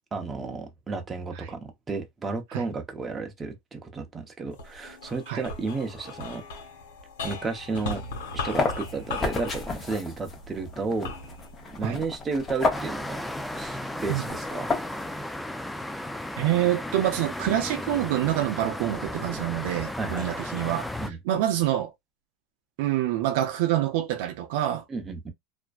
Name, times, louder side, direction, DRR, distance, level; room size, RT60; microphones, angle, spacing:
voice 1, 0.1-6.4 7.2-8.0 8.3-11.1 11.6-13.2 13.5-14.7 20.0-20.4 21.0-21.2 24.9-25.3, right 4 dB, 20° right, 0.7 m, -32 dB
sound 1, 4.5-13.0 13.6-14.3, left 3 dB, 85° left, 1.1 m, -38 dB
sound 2, 8.1-15.2, left 3 dB, 25° left, 0.7 m, -32 dB
sound 3, 12.7-21.1, left 1 dB, 5° left, 0.3 m, -35 dB
voice 2, 16.4-20.9 21.3-21.9 22.8-24.8, right 13 dB, 70° right, 0.5 m, -26 dB
2.5 x 2.1 x 2.3 m
supercardioid pair, 110°, 0 cm